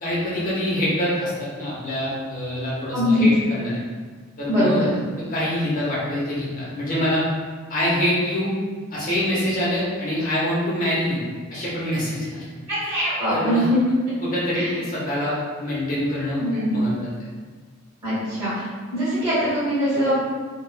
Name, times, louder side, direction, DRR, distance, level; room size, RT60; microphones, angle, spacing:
voice 1, 0.0-3.8 4.4-5.0 5.3-7.2 7.7-8.5 8.9-11.2 11.5-12.4 12.8-12.9 13.3-13.7 14.2-17.3, left 1 dB, 40° left, -7 dB, 1.0 m, -25 dB
voice 2, 2.9-3.3 4.5-4.9 12.7-13.8 14.5-14.7 16.4-16.7 18.0-18.5 18.9-20.2, equal, 30° right, -15 dB, 1.3 m, -22 dB
4.2 x 2.5 x 2.2 m, 1.5 s
head